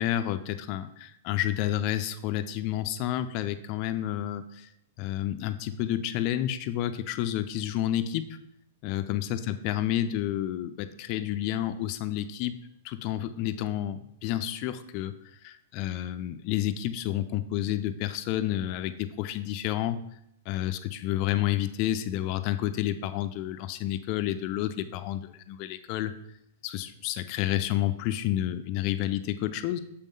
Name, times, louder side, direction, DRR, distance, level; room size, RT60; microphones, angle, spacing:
voice 1, 0.0-4.7 5.0-8.4 8.8-12.6 12.8-15.1 15.4-20.0 20.5-26.1 26.6-29.8, left 12 dB, 45° left, 10 dB, 0.5 m, -30 dB
6.8 x 3.7 x 5.3 m, 0.76 s
hypercardioid pair, 115°, 0 cm